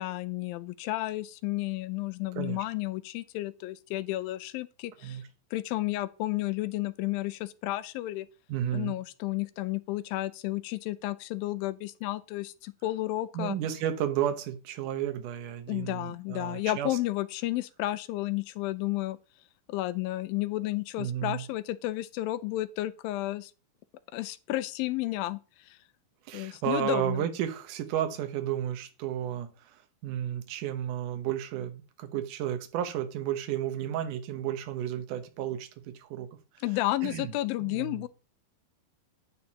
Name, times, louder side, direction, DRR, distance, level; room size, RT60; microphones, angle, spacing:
voice 1, 0.0-5.2 5.5-8.3 8.7-13.6 15.7-19.2 19.7-23.5 24.1-25.4 25.7-25.8 26.3-27.2 36.6-38.1, left 17 dB, 80° left, 2.2 m, -32 dB
voice 2, 8.5-8.9 13.3-17.0 21.0-21.4 26.3-36.3 37.0-37.3 37.6-38.0, right 10 dB, 70° right, 2.3 m, -32 dB
9.6 x 9.1 x 2.9 m
omnidirectional pair, 4.4 m